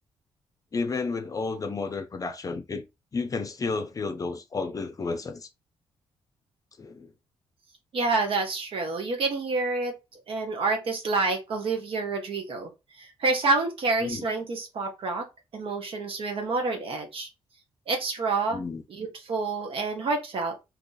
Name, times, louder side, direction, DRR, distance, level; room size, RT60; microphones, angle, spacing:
voice 1, 0.7-2.8 3.1-5.5 6.8-7.1 14.0-14.2 18.5-18.8, left 4 dB, 35° left, 0.5 m, -31 dB
voice 2, 7.9-12.7 13.0-15.3 15.5-17.3 17.9-18.6 18.9-20.6, right 3 dB, 60° right, 0.8 m, -28 dB
2.8 x 2.4 x 3.8 m
cardioid pair, 95°, 10 cm